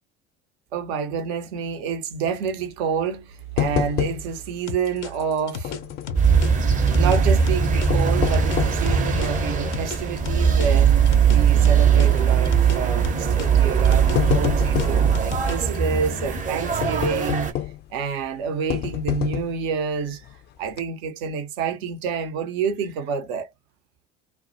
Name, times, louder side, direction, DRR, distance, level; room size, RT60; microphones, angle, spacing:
voice 1, 0.7-5.8 7.0-17.5 17.9-20.3 20.6-23.5, right 6 dB, 60° right, 0.8 m, -28 dB
sound 1, 3.6-4.5 4.8-4.9 5.6-6.3 7.7-8.9 9.5-9.6 10.2-10.5 10.8-10.9 12.0-12.3 13.2-13.4 13.8-15.1 16.8-17.9 18.7-19.7 20.2-20.3 20.7-20.8, left 13 dB, 30° left, 0.4 m, -27 dB
sound 2, 4.7-9.3 9.7-12.8 13.0-15.8, left 5 dB, 85° left, 0.6 m, -34 dB
sound 3, 6.1-17.5, right 6 dB, 25° right, 0.8 m, -20 dB
2.3 x 2.0 x 2.6 m
figure-of-eight pair, 70°, 34 cm